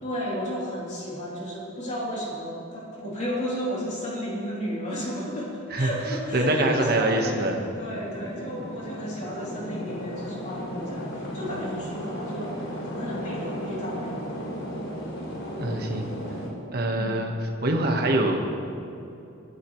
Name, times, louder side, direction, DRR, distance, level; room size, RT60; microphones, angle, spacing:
voice 1, 0.0-12.6 12.9-14.9 16.9-17.2, equal, 35° left, -5 dB, 3.2 m, -33 dB
voice 2, 6.3-7.6 15.6-16.1 16.7-18.4, right 1 dB, 50° right, 2 dB, 1.4 m, -24 dB
sound 1, 7.3-16.5, equal, 80° left, 3.0 m, -35 dB
21.5 x 11.5 x 3.2 m, 2.8 s
head